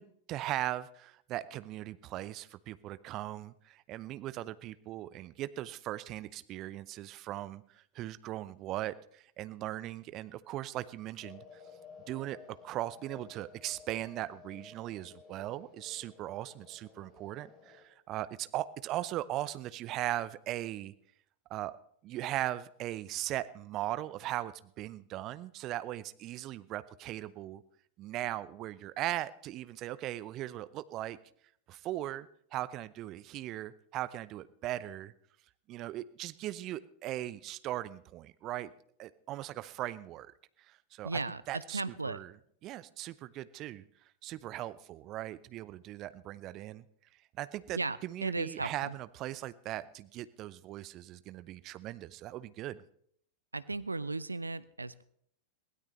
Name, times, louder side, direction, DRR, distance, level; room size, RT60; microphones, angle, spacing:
voice 1, 0.0-7.6 7.9-11.4 12.1-20.9 21.5-21.8 22.0-27.6 28.0-31.2 31.7-35.1 35.7-38.7 39.0-40.3 40.7-41.2 41.5-42.3 42.6-43.8 44.2-46.8 47.4-52.8, right 14 dB, 35° right, 16 dB, 0.6 m, -39 dB
sound 1, 11.2-17.8, left 5 dB, 30° left, 3.1 m, -55 dB
voice 2, 41.0-42.2 47.7-48.9 53.5-55.0, right 3 dB, 80° right, 17 dB, 0.5 m, -36 dB
22.0 x 16.5 x 3.2 m, 0.67 s
figure-of-eight pair, 90°, 0 cm